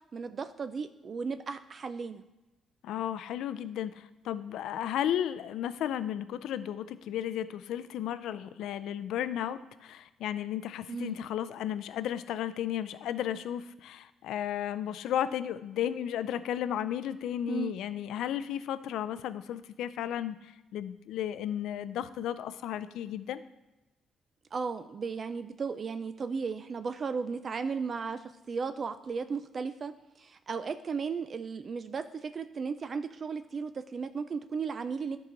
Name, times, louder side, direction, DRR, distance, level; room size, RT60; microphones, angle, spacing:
voice 1, 0.1-2.2 10.9-11.2 17.5-17.7 24.5-35.2, right 5 dB, 45° right, 10 dB, 0.4 m, -35 dB
voice 2, 2.8-23.4, left 10 dB, 85° left, 14 dB, 0.4 m, -34 dB
11.5 x 4.8 x 3.8 m, 1.0 s
cardioid pair, 90°, 0 cm